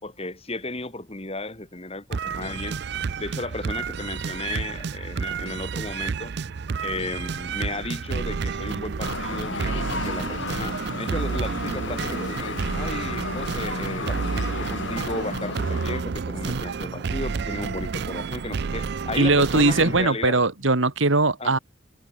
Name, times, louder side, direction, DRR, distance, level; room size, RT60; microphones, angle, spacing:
voice 1, 0.0-2.8 3.2-6.3 6.8-20.4 21.4-21.6, left 2 dB, 30° left, 3.0 m, -34 dB
sound 1, 2.1-20.1, right 5 dB, 55° right, 0.4 m, -30 dB
sound 2, 9.0-16.0, left 3 dB, 65° left, 2.2 m, -33 dB
voice 2, 19.1-21.6, right 3 dB, 70° right, 1.8 m, -20 dB
head